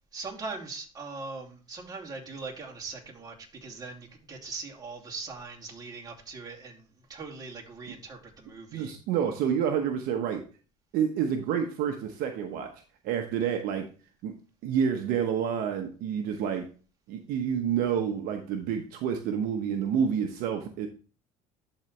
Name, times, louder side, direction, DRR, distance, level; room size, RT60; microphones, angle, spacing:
voice 1, 0.1-8.9, right 4 dB, 25° right, -3 dB, 2.6 m, -41 dB
voice 2, 8.7-10.4 10.9-13.9 14.2-14.3 14.6-16.7 17.1-20.9, right 8 dB, 70° right, 5 dB, 1.0 m, -29 dB
12.0 x 4.0 x 3.2 m, 0.36 s
supercardioid pair, 100°, 16 cm